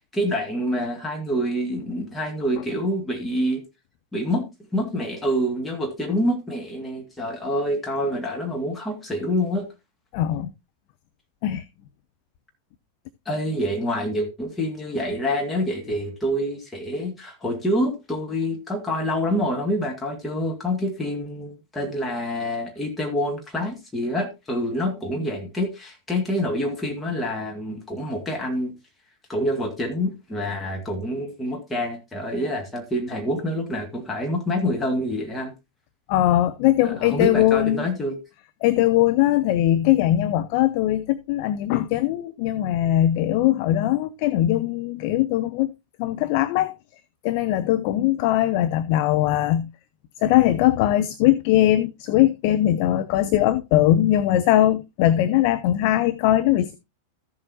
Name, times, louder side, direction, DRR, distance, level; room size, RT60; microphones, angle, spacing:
voice 1, 0.1-3.6 4.1-9.7 13.3-28.7 29.3-35.5 36.8-38.2, equal, 10° left, 1.9 m, -26 dB
voice 2, 10.1-10.5 11.4-11.6 36.1-37.9 38.6-45.7 46.0-46.7 47.2-49.7 50.2-56.7, left 13 dB, 45° left, 0.6 m, -20 dB
14.0 x 7.5 x 2.7 m
figure-of-eight pair, 90°, 0 cm